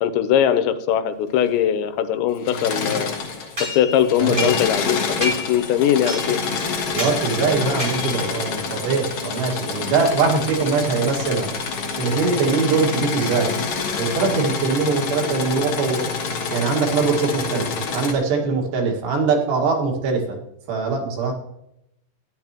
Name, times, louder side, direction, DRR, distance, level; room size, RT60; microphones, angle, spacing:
voice 1, 0.0-3.2 3.6-6.4, left 10 dB, 85° left, 10 dB, 3.1 m, -20 dB
Engine / Mechanisms, 2.4-3.7 4.0-18.1, left 5 dB, 55° left, 2.2 m, -27 dB
sound 1, 3.6-4.9 5.2-5.6 6.1-6.5 7.0-7.2 7.8-8.3, left 2 dB, 20° right, 1.3 m, -29 dB
voice 2, 4.2-4.5 6.9-11.5 12.0-13.5 14.0-16.1 16.5-20.4 20.7-21.3, right 4 dB, 75° right, 1 dB, 3.9 m, -22 dB
14.0 x 10.5 x 2.9 m, 0.79 s
omnidirectional pair, 5.1 m